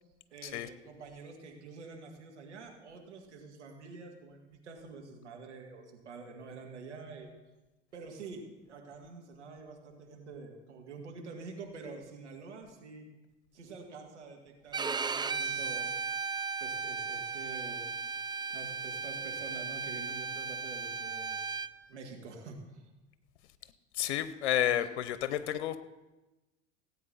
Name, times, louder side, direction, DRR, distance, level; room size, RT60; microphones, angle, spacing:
voice 1, 0.3-7.3 7.9-13.1 13.5-15.9 16.6-17.9 18.5-21.5 21.9-22.9, right 4 dB, 85° right, 2 dB, 2.0 m, -47 dB
Bowed string instrument, 14.7-21.7, right 5 dB, 15° right, 0.5 m, -36 dB
voice 2, 23.9-25.8, left 11 dB, 75° left, 13 dB, 0.7 m, -31 dB
17.5 x 8.5 x 4.2 m, 1.1 s
hypercardioid pair, 70°, 34 cm